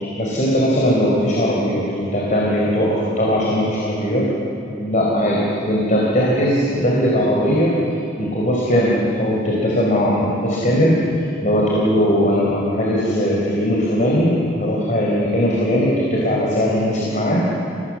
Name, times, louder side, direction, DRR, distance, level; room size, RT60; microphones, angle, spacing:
voice 1, 0.2-4.3 4.8-7.7 8.2-11.0 11.4-14.3 14.6-17.4, equal, 40° left, -4 dB, 4.5 m, -19 dB
30.0 x 19.5 x 7.6 m, 2.8 s
head